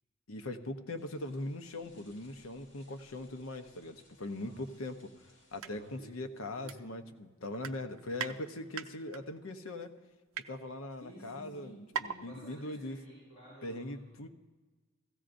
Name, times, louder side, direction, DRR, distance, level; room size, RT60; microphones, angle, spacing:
voice 1, 0.3-5.1 5.5-9.9 10.5-13.0 13.6-14.3, left 2 dB, 85° left, 7 dB, 0.8 m, -41 dB
sound 1, 1.0-6.1, left 1 dB, 65° left, 3.5 m, -65 dB
sound 2, 5.6-5.7 6.1-6.2 6.7-7.2 7.5-8.3 8.7-9.2 9.8-10.5 11.2-11.3 11.5-11.6 11.9-12.2 12.6-12.7, right 7 dB, 80° right, 0.5 m, -39 dB
voice 2, 5.7-6.8 11.0-14.1, right 1 dB, 40° left, -8 dB, 4.2 m, -53 dB
16.5 x 15.0 x 2.6 m, 1.3 s
head